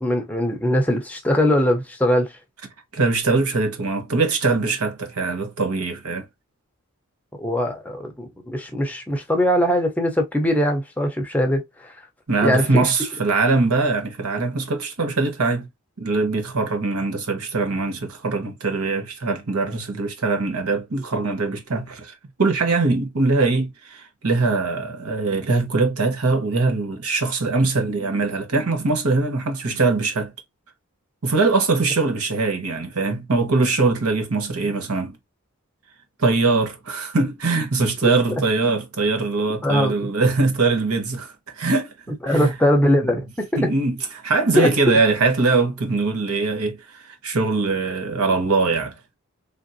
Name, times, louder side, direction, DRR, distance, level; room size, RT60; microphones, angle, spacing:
voice 1, 0.0-2.3 7.4-11.9 12.4-12.9 39.6-39.9 42.2-43.7 44.6-44.7, equal, 5° left, 0.6 m, -21 dB
voice 2, 2.9-6.3 12.3-15.7 16.0-22.1 22.4-30.3 31.2-35.2 36.2-42.5 43.6-44.0 44.2-48.9, right 3 dB, 80° right, 1.1 m, -22 dB
3.5 x 2.5 x 2.6 m
head